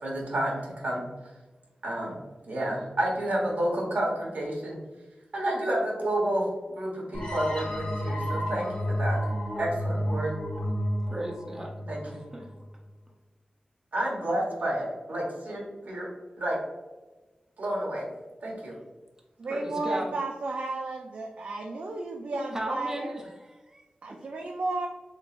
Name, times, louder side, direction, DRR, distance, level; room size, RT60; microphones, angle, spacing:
voice 1, 0.0-1.0 1.8-2.2 2.5-4.8 5.3-6.4 6.7-9.2 9.6-10.3 11.9-12.2 13.9-16.1 16.4-16.6 17.6-18.1 18.4-18.7, right 1 dB, 85° right, -3 dB, 1.2 m, -30 dB
sound 1, 7.1-12.6, equal, 45° left, 1.0 m, -31 dB
voice 2, 11.1-11.7 12.0-12.5 19.5-20.1 22.5-23.9, right 1 dB, 20° right, 0 dB, 0.6 m, -35 dB
voice 3, 19.4-23.1 24.0-24.9, right 2 dB, 65° right, 1 dB, 0.4 m, -33 dB
3.8 x 3.6 x 2.4 m, 1.2 s
wide cardioid pair, 120°, 3 cm